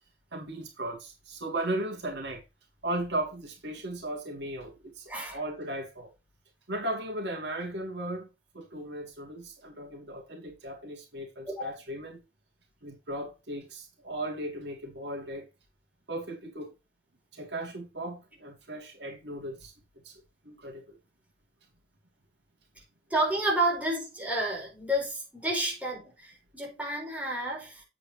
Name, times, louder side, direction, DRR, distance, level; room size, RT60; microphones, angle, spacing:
voice 1, 0.3-2.4 2.8-6.1 6.7-8.3 8.5-12.2 12.8-15.5 16.1-16.7 17.3-19.7 20.0-21.0, right 1 dB, 75° right, 2.6 m, -36 dB
voice 2, 5.1-5.4 11.5-11.7 23.1-27.8, right 1 dB, 10° right, 4.6 m, -30 dB
8.5 x 8.4 x 3.1 m
head